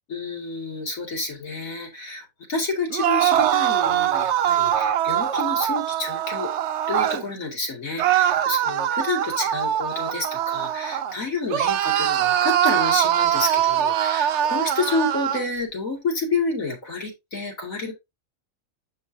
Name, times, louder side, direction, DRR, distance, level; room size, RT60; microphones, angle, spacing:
voice 1, 0.1-6.5 6.9-17.9, left 3 dB, 80° left, 1 dB, 2.7 m, -29 dB
sound 1, 2.9-7.2 8.0-11.1 11.5-15.4, right 11 dB, 65° right, 0.8 m, -22 dB
7.2 x 6.2 x 2.7 m, 0.21 s
omnidirectional pair, 1.4 m